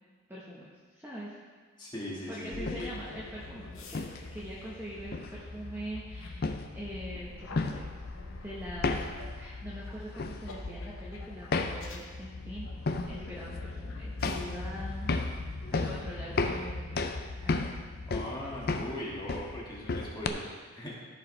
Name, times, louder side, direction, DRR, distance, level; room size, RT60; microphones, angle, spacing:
voice 1, 0.3-0.7 0.9-1.4 2.3-7.9 8.4-9.1 9.4-12.7 13.1-15.1 15.7-17.0 17.4-17.7, equal, 10° right, -7 dB, 1.1 m, -42 dB
voice 2, 1.8-2.9 9.0-9.1 18.1-20.9, left 1 dB, 20° left, -6 dB, 2.0 m, -39 dB
sound 1, 2.5-15.6, left 2 dB, 65° left, 0.8 m, -48 dB
sound 2, 2.5-20.3, left 3 dB, 45° left, 0.5 m, -35 dB
14.5 x 4.9 x 3.3 m, 1.5 s
head